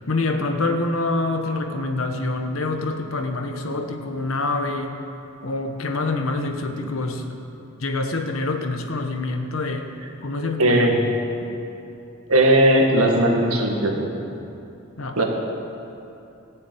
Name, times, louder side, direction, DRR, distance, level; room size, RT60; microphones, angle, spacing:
voice 1, 0.0-5.0 5.4-7.5 7.8-9.9 10.2-10.9 15.0-15.2, left 2 dB, 70° left, 5 dB, 1.1 m, -26 dB
voice 2, 10.6-11.0 12.3-14.1 15.2-15.3, right 1 dB, 90° right, 1 dB, 1.9 m, -17 dB
13.5 x 7.1 x 8.7 m, 2.7 s
head